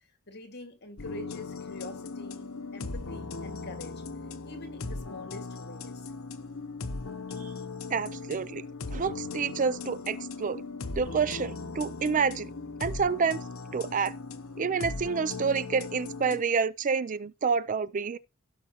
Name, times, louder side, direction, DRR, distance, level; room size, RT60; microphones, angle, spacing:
voice 1, 0.3-4.0 4.4-6.1, left 1 dB, 55° left, 2.1 m, -45 dB
sound 1, 1.0-16.4, left 3 dB, 85° left, 0.9 m, -38 dB
voice 2, 7.9-8.6 8.9-10.6 11.0-12.5 12.8-13.4 13.7-14.2 14.6-18.2, right 5 dB, 40° right, 0.4 m, -28 dB
16.5 x 5.8 x 3.0 m
head